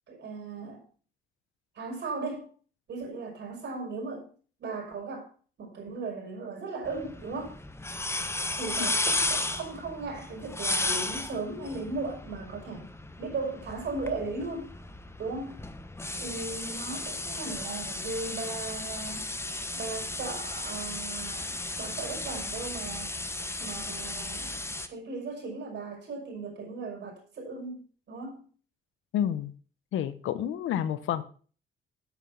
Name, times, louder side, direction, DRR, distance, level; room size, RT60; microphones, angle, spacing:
voice 1, 0.1-0.8 1.7-2.5 2.9-4.3 4.6-5.3 5.6-7.6 8.6-12.9 13.2-14.7 15.2-15.6 16.2-19.3 19.7-23.2 23.6-24.6 24.9-28.4, right 3 dB, 60° right, 1 dB, 5.8 m, -37 dB
sound 1, 6.8-24.9, left 2 dB, 15° left, 1.1 m, -34 dB
voice 2, 29.1-29.5 29.9-31.2, left 10 dB, 80° left, 13 dB, 1.0 m, -29 dB
9.1 x 8.2 x 5.5 m, 0.41 s
cardioid pair, 90°, 20 cm